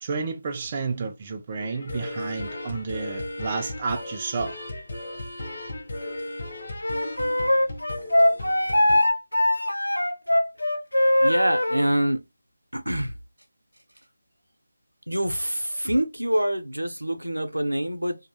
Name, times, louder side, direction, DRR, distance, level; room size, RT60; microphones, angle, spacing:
voice 1, 0.0-4.5, right 4 dB, 25° right, 0.3 m, -31 dB
sound 1, 1.6-9.0, left 1 dB, 50° left, 0.8 m, -36 dB
Wind instrument woodwind instrument, 6.8-11.9, left 1 dB, 80° left, 0.5 m, -21 dB
voice 2, 11.2-12.2 12.7-13.1 15.1-18.2, right 1 dB, 85° right, 0.6 m, -25 dB
2.7 x 2.3 x 2.6 m
figure-of-eight pair, 160°, 0 cm